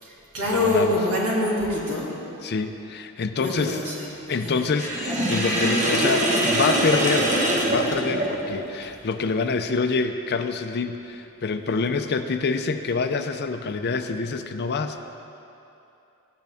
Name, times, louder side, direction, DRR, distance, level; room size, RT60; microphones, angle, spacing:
voice 1, 0.0-2.1 3.4-4.5, left 1 dB, 85° right, -6 dB, 2.7 m, -25 dB
voice 2, 0.5-1.0 2.4-3.9 4.3-7.3 7.6-15.0, left 4 dB, 50° left, 8 dB, 0.5 m, -26 dB
Sink (filling or washing), 4.7-8.7, right 1 dB, 35° right, 1.1 m, -23 dB
14.5 x 9.2 x 3.5 m, 2.8 s
head